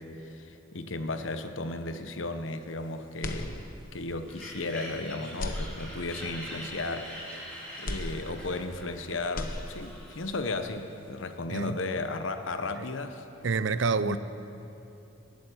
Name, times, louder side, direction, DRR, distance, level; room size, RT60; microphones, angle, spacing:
voice 1, 0.0-7.4 7.8-13.2 14.0-14.2, left 2 dB, 80° left, 8 dB, 1.0 m, -35 dB
sound 1, 3.2-4.1 4.5-4.6 5.3-6.3 7.8-8.9 9.2-10.2, left 1 dB, 45° left, 1.1 m, -37 dB
sound 2, 4.3-10.3, equal, 5° left, 3.6 m, -44 dB
voice 2, 13.4-14.2, right 4 dB, 70° right, 14 dB, 0.6 m, -27 dB
19.0 x 8.7 x 8.3 m, 2.9 s
head